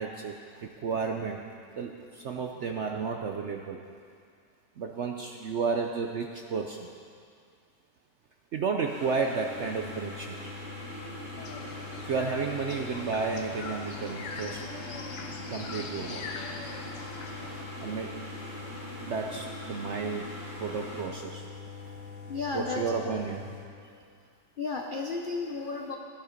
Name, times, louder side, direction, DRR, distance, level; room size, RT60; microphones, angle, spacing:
voice 1, 0.0-1.4 1.7-3.8 4.8-6.9 8.5-10.5 12.0-14.6 15.5-16.3 17.8-18.3 19.0-21.5 22.5-23.5, right 5 dB, 65° right, 3 dB, 0.7 m, -32 dB
sound 1, 8.8-21.0, equal, 35° right, 4.0 m, -43 dB
sound 2, 9.4-23.6, left 5 dB, 35° left, 4.5 m, -44 dB
sound 3, 11.4-17.6, left 5 dB, 80° left, 1.6 m, -43 dB
voice 2, 22.3-22.9 24.6-26.0, left 4 dB, 65° left, 2 dB, 0.5 m, -33 dB
13.5 x 10.5 x 5.1 m, 2.3 s
omnidirectional pair, 1.9 m